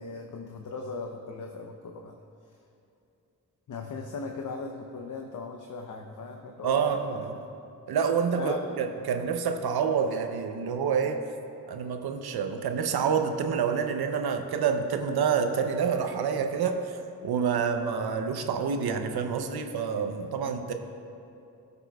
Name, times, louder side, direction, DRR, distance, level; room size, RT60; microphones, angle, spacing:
voice 1, 0.0-2.2 3.7-6.9 8.4-8.7 19.7-19.8 20.4-20.7, left 4 dB, 55° left, 2 dB, 0.7 m, -38 dB
voice 2, 6.6-7.4 7.9-11.2 11.7-20.7, right 6 dB, 80° right, 6 dB, 0.7 m, -28 dB
14.0 x 6.9 x 2.3 m, 2.7 s
cardioid pair, 60°, 37 cm